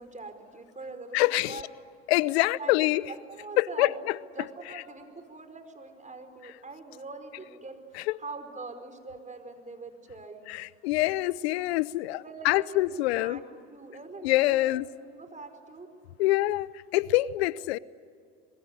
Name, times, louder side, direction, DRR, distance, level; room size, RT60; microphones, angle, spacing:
voice 1, 0.0-1.6 2.4-3.9 4.4-10.5 12.1-15.9, right 3 dB, 25° right, 7 dB, 5.1 m, -43 dB
voice 2, 1.1-1.6 2.1-3.0 3.6-3.9 10.5-13.4 14.2-14.9 16.2-17.8, left 17 dB, 85° left, 20 dB, 0.7 m, -25 dB
26.0 x 22.0 x 9.9 m, 2.2 s
hypercardioid pair, 70°, 31 cm